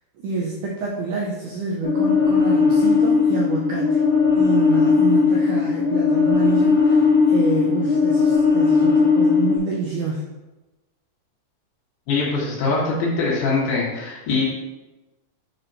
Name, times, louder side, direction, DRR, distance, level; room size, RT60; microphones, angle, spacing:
voice 1, 0.2-4.0 4.3-10.2, right 4 dB, 85° right, -2 dB, 1.8 m, -28 dB
sound 1, 1.8-9.6, left 5 dB, 55° left, 1.4 m, -18 dB
voice 2, 12.1-14.4, left 3 dB, 85° left, -6 dB, 3.9 m, -22 dB
10.0 x 4.4 x 2.7 m, 1.1 s
omnidirectional pair, 4.5 m